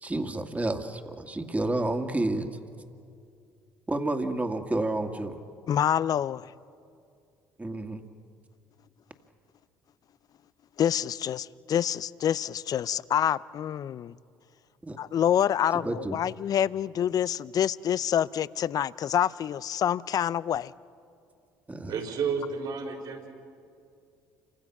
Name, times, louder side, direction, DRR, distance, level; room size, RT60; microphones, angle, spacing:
voice 1, 0.0-2.5 3.9-5.4 7.6-8.0 14.8-15.0 15.8-16.2 21.7-21.9, right 2 dB, 20° right, 6 dB, 2.2 m, -30 dB
voice 2, 5.7-6.5 10.8-14.1 15.0-20.7, left 9 dB, 50° left, 19 dB, 0.6 m, -27 dB
voice 3, 21.9-23.3, right 6 dB, 60° right, 2 dB, 4.8 m, -31 dB
29.0 x 25.0 x 6.1 m, 2.4 s
hypercardioid pair, 65°, 8 cm